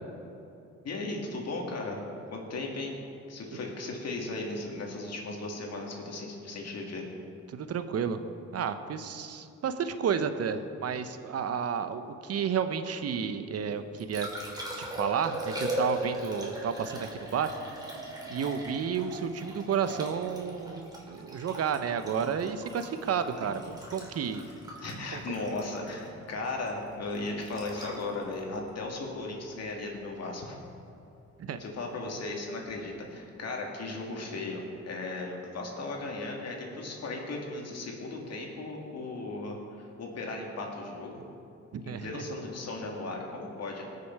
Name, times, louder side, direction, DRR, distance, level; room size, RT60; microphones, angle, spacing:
voice 1, 0.8-3.0 3.3-7.0 23.3-23.5 24.4-24.5 24.8-30.6 31.6-41.2 41.8-43.8, left 2 dB, 55° left, 0 dB, 2.5 m, -36 dB
voice 2, 7.5-8.2 8.5-14.3 14.8-17.5 18.3-24.4 25.1-25.2 31.4-31.6 41.7-42.2, right 7 dB, 55° right, 10 dB, 0.9 m, -31 dB
Liquid, 13.7-29.8 32.6-32.8, right 1 dB, 15° right, 3.0 m, -39 dB
19.5 x 6.7 x 4.7 m, 2.7 s
cardioid pair, 90°, 30 cm